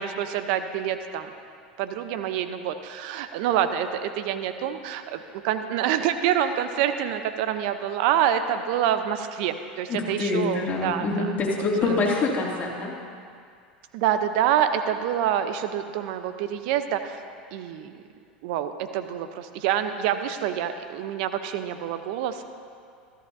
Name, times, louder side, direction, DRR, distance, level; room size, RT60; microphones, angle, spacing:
voice 1, 0.0-1.3 1.8-11.3 11.8-12.1 13.9-17.2 17.5-17.9 18.4-22.4, right 10 dB, 65° right, 9 dB, 0.8 m, -27 dB
voice 2, 9.9-12.9, left 3 dB, 30° left, -3 dB, 2.7 m, -25 dB
14.0 x 13.5 x 2.7 m, 2.3 s
hypercardioid pair, 95°, 5 cm